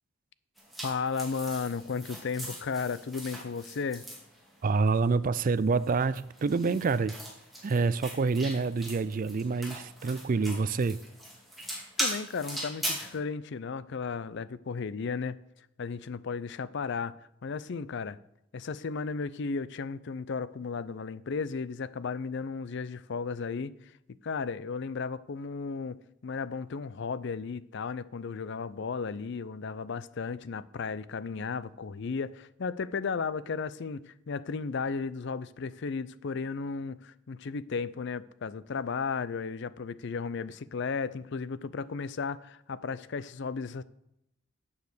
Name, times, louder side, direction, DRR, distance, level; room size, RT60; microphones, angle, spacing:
sound 1, 0.6-4.9 5.6-13.2, right 1 dB, ahead, 2.4 m, -40 dB
voice 1, 0.8-4.0 12.0-15.4 15.8-17.1 17.4-18.2 18.5-23.7 24.2-43.8, left 5 dB, 60° left, 0.5 m, -34 dB
voice 2, 4.6-7.2 7.6-11.0, right 4 dB, 40° right, 0.4 m, -27 dB
9.3 x 7.3 x 6.6 m
head